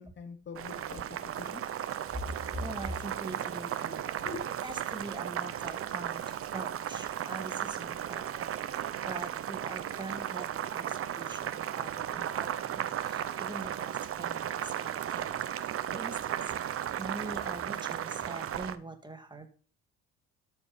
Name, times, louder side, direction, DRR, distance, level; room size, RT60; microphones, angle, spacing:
voice 1, 0.0-1.6 3.9-4.5, left 5 dB, 40° left, 1.1 m, -44 dB
Boiling, 0.5-18.8, right 10 dB, 50° right, 0.9 m, -35 dB
voice 2, 2.1-4.1 4.6-15.3 15.5-16.7 17.0-19.5, right 2 dB, 15° right, 2.1 m, -43 dB
13.0 x 5.5 x 5.4 m
cardioid pair, 105°, 30 cm